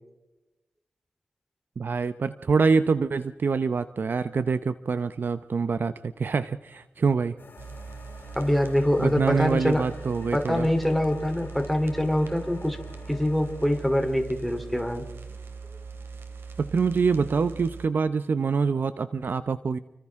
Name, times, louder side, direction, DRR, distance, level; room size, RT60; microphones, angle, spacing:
voice 1, 1.8-7.3 9.0-10.7 16.6-19.8, right 5 dB, 60° right, 12 dB, 0.7 m, -25 dB
sound 1, 7.4-14.0, left 4 dB, 60° left, 3.8 m, -48 dB
sound 2, 7.6-17.9, right 5 dB, 75° right, 2.9 m, -41 dB
voice 2, 8.3-9.9 10.3-12.8 13.1-15.1, left 1 dB, ahead, 4 dB, 3.4 m, -24 dB
30.0 x 24.5 x 3.7 m, 0.98 s
wide cardioid pair, 80°, 4 cm